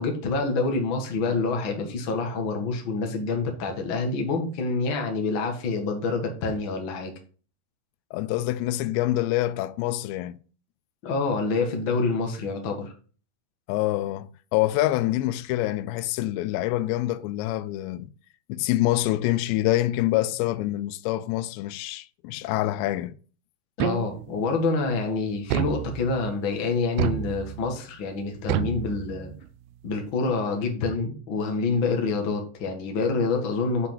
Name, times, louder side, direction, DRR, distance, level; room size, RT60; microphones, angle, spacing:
voice 1, 0.0-7.1 11.0-12.9 23.8-29.3 29.8-33.9, left 4 dB, 45° left, 1.7 m, -27 dB
voice 2, 8.1-10.4 13.7-18.1 18.5-23.1, left 15 dB, 90° left, 2.8 m, -26 dB
sound 1, 23.8-24.5 25.5-26.3 27.0-27.8 28.5-29.5, right 12 dB, 80° right, 2.3 m, -29 dB
7.8 x 5.8 x 7.3 m
omnidirectional pair, 4.9 m